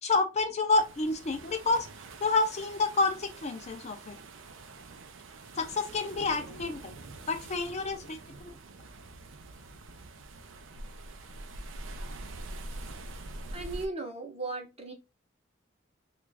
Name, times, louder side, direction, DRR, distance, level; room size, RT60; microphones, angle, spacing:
voice 1, 0.0-1.9 2.2-4.2 5.6-6.9 7.3-8.5, left 3 dB, 35° left, 0.4 m, -29 dB
sound 1, 0.7-13.9, right 2 dB, 80° right, 0.5 m, -45 dB
voice 2, 13.5-14.9, right 3 dB, 30° right, 0.7 m, -36 dB
3.0 x 2.4 x 3.3 m
head